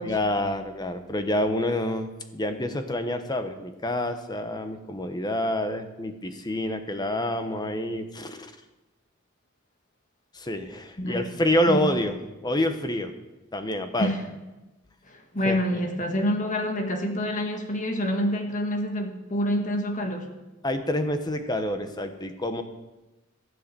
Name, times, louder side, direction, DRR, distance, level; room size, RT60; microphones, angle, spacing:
voice 1, 0.0-8.5 10.3-12.1 12.4-13.1 13.5-14.1 15.4-15.6 20.6-22.6, left 1 dB, 20° left, 8 dB, 1.0 m, -27 dB
voice 2, 11.0-11.4 11.7-11.9 14.0-14.2 15.1-20.3, equal, 40° left, 4 dB, 1.6 m, -27 dB
15.0 x 7.7 x 6.9 m, 1.1 s
head